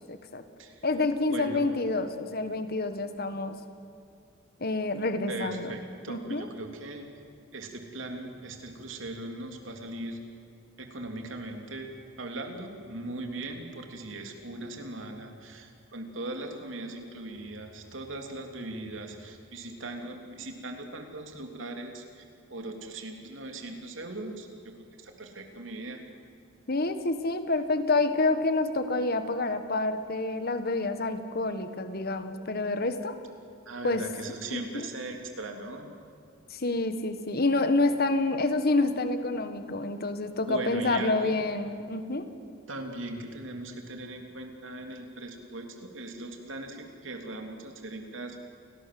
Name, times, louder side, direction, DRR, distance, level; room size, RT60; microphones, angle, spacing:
voice 1, 0.1-0.4 0.8-3.6 4.6-5.7 6.1-6.5 26.7-33.2 33.8-34.0 34.5-34.9 36.5-42.3, left 2 dB, 50° left, 9 dB, 1.6 m, -28 dB
voice 2, 1.3-1.7 5.3-7.1 7.5-10.2 10.8-11.9 12.2-26.0 33.6-36.0 40.5-41.4 42.7-48.4, right 2 dB, 70° right, 3 dB, 3.3 m, -39 dB
29.5 x 19.0 x 7.8 m, 2.5 s
head